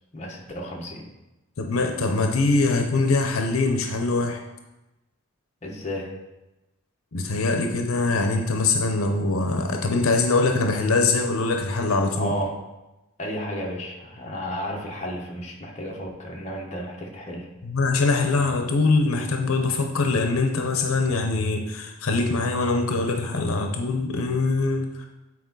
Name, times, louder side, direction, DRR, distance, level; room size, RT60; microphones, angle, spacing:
voice 1, 0.1-1.1 5.6-6.2 12.2-12.6 13.2-17.5, equal, 30° left, -2 dB, 1.1 m, -32 dB
voice 2, 1.6-4.4 7.1-12.3 17.6-25.1, left 3 dB, 80° left, 4 dB, 0.7 m, -23 dB
8.6 x 4.4 x 3.9 m, 1.0 s
head